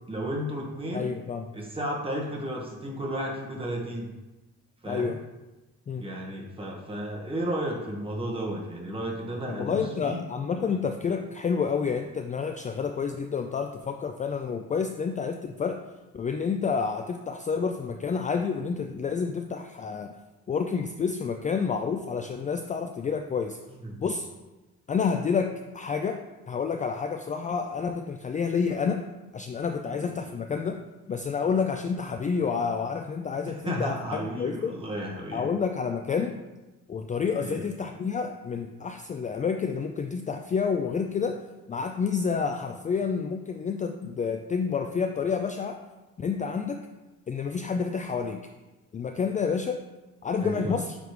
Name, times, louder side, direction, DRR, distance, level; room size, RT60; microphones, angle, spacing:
voice 1, 0.1-1.1 1.5-4.1 4.8-5.1 6.0-10.2 10.6-10.8 23.8-24.0 29.8-30.1 33.5-35.5 37.4-37.7 50.4-50.8, right 1 dB, 20° right, -2 dB, 1.5 m, -33 dB
voice 2, 0.9-1.5 4.9-5.2 5.9-6.1 9.5-15.8 16.1-20.2 20.5-23.6 24.0-24.3 24.9-29.0 29.3-30.8 31.1-34.8 35.3-36.4 36.9-41.4 41.7-45.8 46.2-46.8 47.3-48.4 48.9-49.8 50.2-51.0, left 5 dB, 25° left, 5 dB, 0.3 m, -29 dB
9.1 x 3.4 x 3.2 m, 1.1 s
cardioid pair, 90°, 30 cm